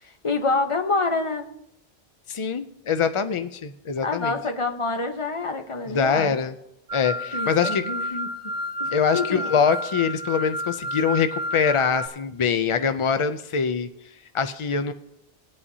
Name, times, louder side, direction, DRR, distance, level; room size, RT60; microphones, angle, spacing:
voice 1, 0.0-1.4 4.0-6.4 7.3-8.5 8.8-9.4, left 3 dB, 30° left, 5 dB, 0.9 m, -27 dB
voice 2, 2.3-4.4 5.9-6.5 6.9-8.1 8.9-13.9 14.3-14.9, left 6 dB, 60° left, 10 dB, 0.3 m, -24 dB
sound 1, 6.9-12.1, equal, 85° right, 1.3 m, -31 dB
19.5 x 8.5 x 2.7 m, 0.82 s
omnidirectional pair, 1.1 m